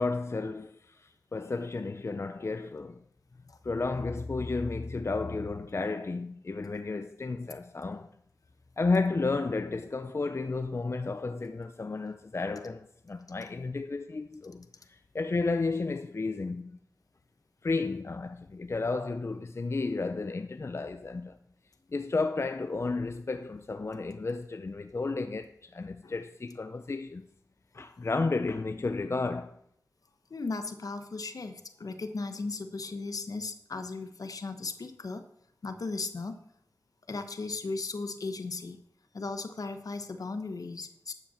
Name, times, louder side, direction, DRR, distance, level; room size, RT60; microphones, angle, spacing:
voice 1, 0.0-3.0 3.6-8.1 8.8-16.8 17.6-21.4 21.9-27.2 27.7-29.6, left 3 dB, 45° left, 0.6 m, -32 dB
voice 2, 30.3-35.2 35.6-36.4 37.1-38.8 39.1-41.1, left 3 dB, 65° left, 1.2 m, -36 dB
12.0 x 5.9 x 7.1 m
cardioid pair, 55°, 7 cm